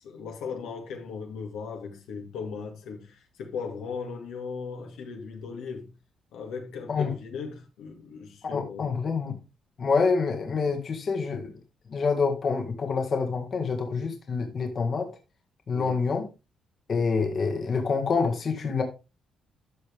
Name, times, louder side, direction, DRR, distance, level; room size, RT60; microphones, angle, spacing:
voice 1, 0.0-5.9 6.3-8.9 15.7-16.0, left 5 dB, 85° left, 2.3 m, -37 dB
voice 2, 8.4-9.3 9.8-11.5 11.9-15.1 15.7-16.3 16.9-18.8, left 5 dB, 50° left, 1.8 m, -27 dB
13.0 x 5.5 x 3.5 m
cardioid pair, 90°, 0 cm